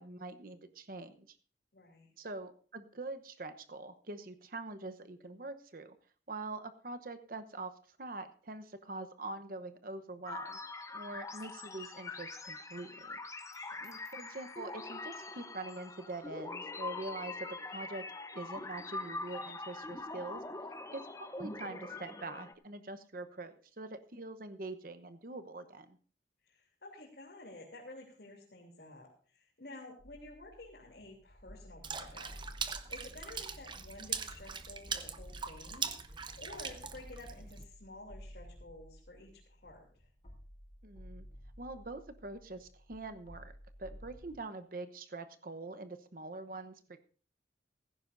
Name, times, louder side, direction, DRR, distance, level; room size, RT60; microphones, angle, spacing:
voice 1, 0.0-1.4 2.2-6.0 6.3-10.6 10.9-13.2 13.8-18.0 18.3-20.4 20.9-26.0 40.8-41.3 41.6-43.5 43.8-47.0, right 2 dB, 50° right, 9 dB, 1.0 m, -44 dB
voice 2, 1.7-2.1 13.5-13.9 26.4-32.4 32.9-40.1, left 2 dB, 65° left, -3 dB, 3.1 m, -52 dB
sound 1, 10.3-22.5, left 3 dB, 20° left, 0.9 m, -43 dB
sound 2, 30.0-44.4, equal, 35° left, 4.3 m, -54 dB
Water / Splash splatter, 31.8-37.6, right 6 dB, 25° right, 0.9 m, -41 dB
16.0 x 15.0 x 2.6 m, 0.42 s
head